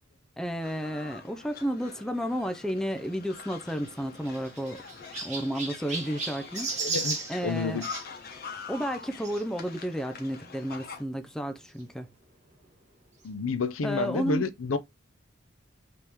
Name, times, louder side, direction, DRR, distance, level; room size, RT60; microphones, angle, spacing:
voice 1, 0.4-4.8 5.2-6.9 7.3-7.8 8.7-12.1 13.8-14.5, equal, 5° left, 0.4 m, -32 dB
sound 1, 0.6-11.0, left 5 dB, 50° left, 1.0 m, -45 dB
Chirp tweet, 3.8-8.0 9.2-9.4 10.1-10.2 10.4-10.5 11.8-11.9, right 4 dB, 35° right, 1.5 m, -35 dB
voice 2, 6.8-7.2 7.4-7.8 13.2-14.8, left 4 dB, 85° left, 0.6 m, -29 dB
5.2 x 3.0 x 3.4 m
head